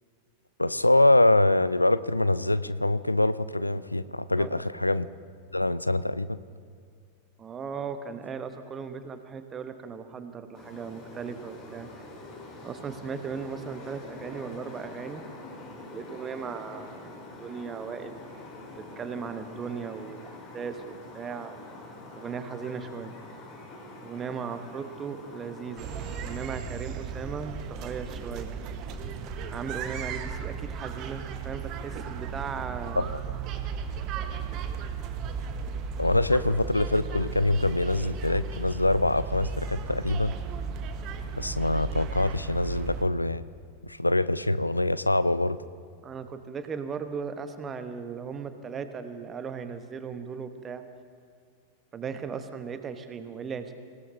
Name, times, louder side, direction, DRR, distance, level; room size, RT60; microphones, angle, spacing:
voice 1, 0.6-5.1 5.5-6.4 33.0-33.2 36.0-40.3 41.4-43.4 43.9-45.6, left 2 dB, 85° left, 16 dB, 0.4 m, -24 dB
voice 2, 7.4-11.9 12.6-15.3 15.9-17.0 17.4-18.2 19.0-21.6 22.1-23.1 24.0-25.9 26.2-28.5 29.5-33.1 46.0-50.8 51.9-53.7, right 6 dB, 20° right, 9 dB, 1.1 m, -37 dB
sound 1, 10.5-26.5, left 2 dB, 35° left, 4.0 m, -45 dB
sound 2, 25.8-43.0, right 5 dB, 40° right, 1.3 m, -35 dB
26.0 x 17.0 x 2.8 m, 2.2 s
figure-of-eight pair, 90°, 0 cm